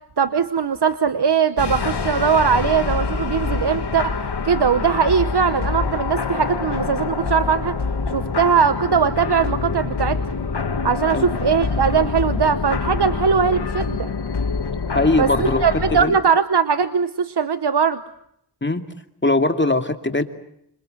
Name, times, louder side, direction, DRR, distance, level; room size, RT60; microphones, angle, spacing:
voice 1, 0.2-4.2 4.4-7.8 8.1-10.2 10.8-14.1 15.2-18.0, right 6 dB, 80° right, 12 dB, 1.1 m, -20 dB
sound 1, 1.6-16.0, left 4 dB, 85° left, 2.0 m, -25 dB
voice 2, 14.9-15.7 15.9-16.2 18.6-18.8 19.2-20.2, left 2 dB, 30° left, 7 dB, 2.6 m, -20 dB
27.0 x 27.0 x 7.9 m, 0.76 s
wide cardioid pair, 60°, 39 cm